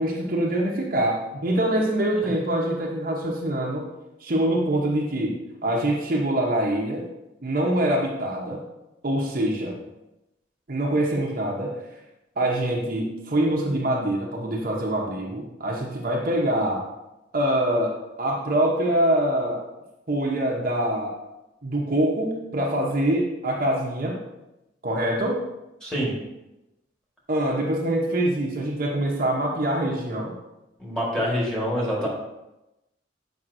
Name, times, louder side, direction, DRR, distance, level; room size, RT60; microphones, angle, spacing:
voice 1, 0.0-3.8 4.2-7.1 7.4-8.6 9.0-9.8 10.7-11.7 12.4-16.8 17.3-19.6 20.1-21.1 21.6-24.2 24.8-25.4 27.3-30.3, right 1 dB, 50° right, -2 dB, 0.9 m, -24 dB
voice 2, 25.8-26.1 30.8-32.1, equal, 5° left, -5 dB, 1.6 m, -26 dB
7.5 x 5.1 x 2.6 m, 0.96 s
head